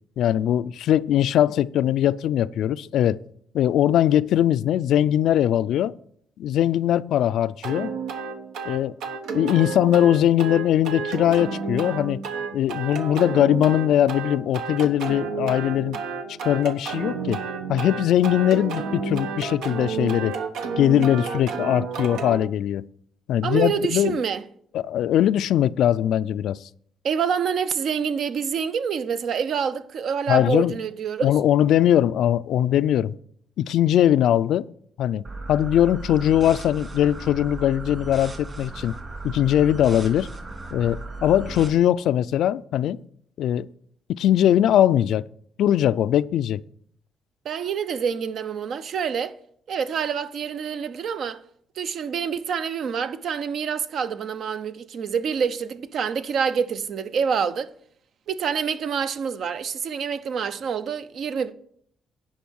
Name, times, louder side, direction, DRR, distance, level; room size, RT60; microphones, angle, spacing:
voice 1, 0.2-3.2 3.5-5.9 6.4-7.9 8.7-8.9 9.3-12.2 12.5-16.0 16.4-17.4 17.7-20.3 20.8-22.9 23.3-24.2 24.7-26.6 30.3-30.8 31.2-33.1 33.6-34.7 35.0-38.9 39.2-40.3 40.7-43.0 43.4-43.7 44.1-45.2 45.6-46.6, left 11 dB, 75° left, 0.3 m, -21 dB
sound 1, 7.6-22.4, right 5 dB, 85° right, 1.0 m, -31 dB
voice 2, 23.4-24.4 27.0-31.3 47.4-49.3 49.7-51.4 51.8-57.7 58.3-61.5, right 7 dB, 65° right, 0.6 m, -27 dB
sound 2, 35.2-41.7, right 3 dB, 35° right, 2.6 m, -36 dB
10.5 x 5.3 x 6.3 m
cardioid pair, 90°, 0 cm